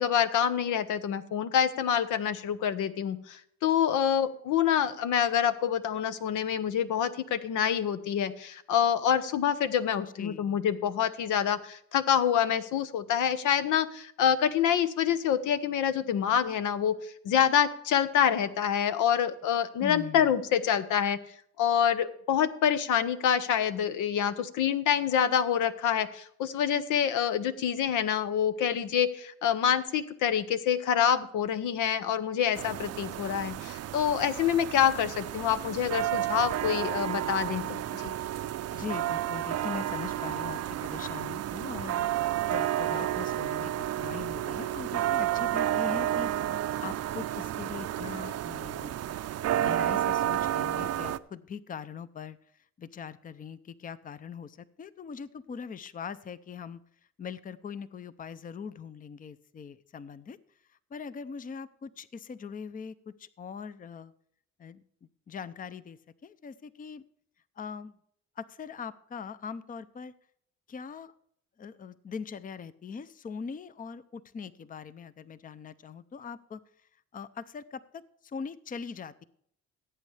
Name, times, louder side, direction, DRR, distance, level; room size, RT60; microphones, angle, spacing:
voice 1, 0.0-21.2 21.6-38.1, left 9 dB, 85° left, 12 dB, 0.8 m, -27 dB
voice 2, 10.2-10.6 19.8-20.4 38.7-42.1 42.4-46.3 46.8-49.2 49.5-52.4 52.8-56.8 57.2-60.4 60.9-64.1 64.6-64.8 65.3-67.0 67.6-67.9 68.4-70.1 70.7-71.1 71.6-76.6 77.1-79.2, left 6 dB, 30° left, 15 dB, 0.5 m, -41 dB
sound 1, 32.5-51.2, right 12 dB, 55° right, 0.5 m, -31 dB
17.0 x 8.3 x 3.3 m, 0.67 s
cardioid pair, 90°, 30 cm